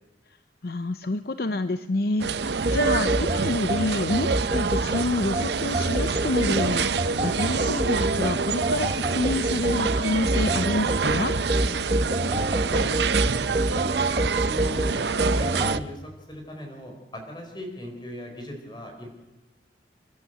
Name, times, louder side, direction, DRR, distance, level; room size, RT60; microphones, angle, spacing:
voice 1, 0.6-11.3, left 2 dB, 55° left, 11 dB, 0.6 m, -28 dB
sound 1, 2.2-15.8, right 5 dB, 70° right, 0.7 m, -27 dB
sound 2, 2.7-15.8, right 1 dB, 35° right, 1.2 m, -27 dB
voice 2, 13.4-19.1, equal, 25° left, 3 dB, 4.4 m, -39 dB
30.0 x 12.0 x 7.9 m, 1.1 s
head